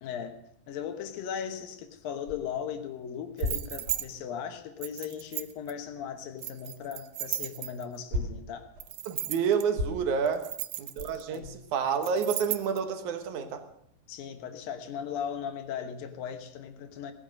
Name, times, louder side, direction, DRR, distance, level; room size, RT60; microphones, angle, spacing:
voice 1, 0.0-0.4 0.7-8.7 11.3-11.6 14.1-17.1, left 8 dB, 70° left, 7 dB, 2.6 m, -37 dB
sound 1, 2.2-5.7 6.0-11.7, equal, 45° right, 4.0 m, -38 dB
sound 2, 3.4-4.1 4.8-5.7 6.4-8.0 8.8-9.6 10.3-11.4 12.0-12.8, right 15 dB, 80° right, 2.0 m, -35 dB
voice 2, 9.1-10.5 10.8-13.6, right 6 dB, 65° right, 8 dB, 2.2 m, -29 dB
18.0 x 10.0 x 6.5 m, 0.72 s
omnidirectional pair, 4.7 m